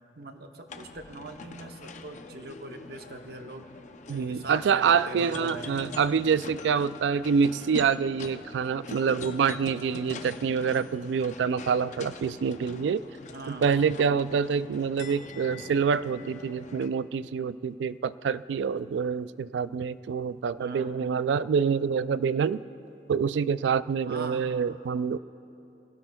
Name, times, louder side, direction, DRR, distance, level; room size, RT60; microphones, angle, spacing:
voice 1, 0.2-3.7 4.1-5.9 13.3-13.6 20.6-21.0 24.0-24.4, right 2 dB, 60° right, 5 dB, 0.9 m, -41 dB
sound 1, 0.7-16.9, left 3 dB, 45° left, 0.6 m, -43 dB
voice 2, 4.1-13.0 13.5-22.6 23.1-25.2, right 6 dB, 85° right, 16 dB, 0.3 m, -26 dB
23.5 x 16.5 x 2.3 m, 2.9 s
head